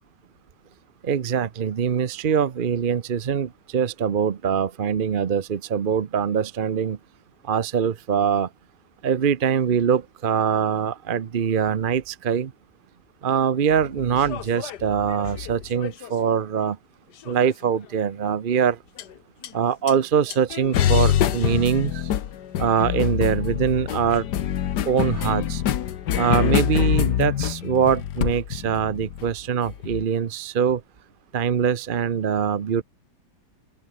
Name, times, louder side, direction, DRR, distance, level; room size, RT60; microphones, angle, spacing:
voice 1, 1.0-7.0 7.4-8.5 9.0-12.5 13.2-16.8 17.3-18.8 19.5-22.1 22.6-24.2 24.9-25.6 26.2-30.8 31.3-32.8, right 7 dB, 45° right, 0.7 m, -23 dB
sound 1, 13.8-16.3 17.3-17.8 19.0-19.1 19.4-19.5 19.9-20.0 20.3-30.1, left 10 dB, 75° left, 1.6 m, -26 dB
open air
omnidirectional pair, 1.8 m